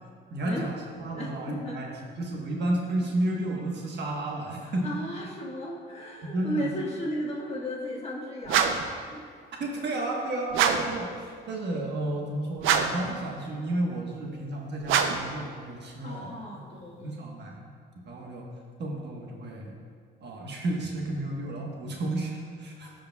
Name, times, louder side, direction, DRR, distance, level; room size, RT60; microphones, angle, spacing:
voice 1, 0.3-4.9 6.2-6.7 9.6-16.6 17.0-17.6 18.0-18.5 18.8-19.7 20.2-22.9, right 1 dB, 60° right, -1 dB, 1.3 m, -32 dB
voice 2, 1.1-2.0 4.6-8.7 9.1-9.2 16.0-17.1, equal, 30° left, -3 dB, 1.6 m, -35 dB
sound 1, 8.5-9.0 10.5-11.0 12.6-13.1 14.8-15.3, right 7 dB, 90° right, 0.5 m, -24 dB
14.5 x 5.1 x 2.3 m, 2.1 s
cardioid pair, 90°, 20 cm